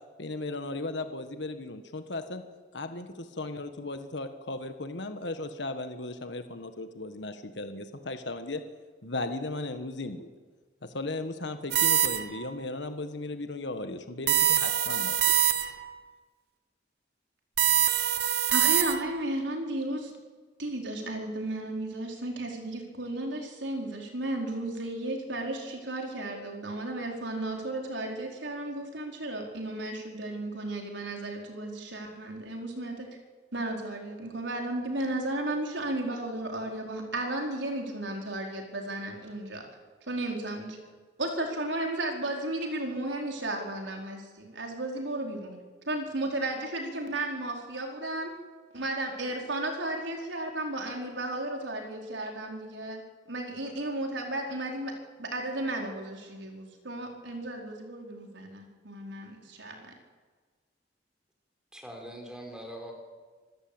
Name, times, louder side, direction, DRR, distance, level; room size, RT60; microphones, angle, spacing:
voice 1, 0.2-2.4 2.7-8.6 9.0-10.3 10.8-15.7, left 2 dB, 70° left, 8 dB, 1.5 m, -36 dB
sound 1, 11.7-12.5 14.3-15.9 17.6-19.2, right 11 dB, 55° right, 1.1 m, -25 dB
voice 2, 18.5-20.1 20.6-33.1 33.5-39.7 40.1-40.8 41.2-45.5 45.9-48.3 48.7-53.0 53.3-54.9 55.2-59.9, right 1 dB, 75° right, 2 dB, 4.7 m, -34 dB
voice 3, 61.7-62.9, equal, 5° right, 2 dB, 4.3 m, -42 dB
26.5 x 14.0 x 8.9 m, 1.5 s
head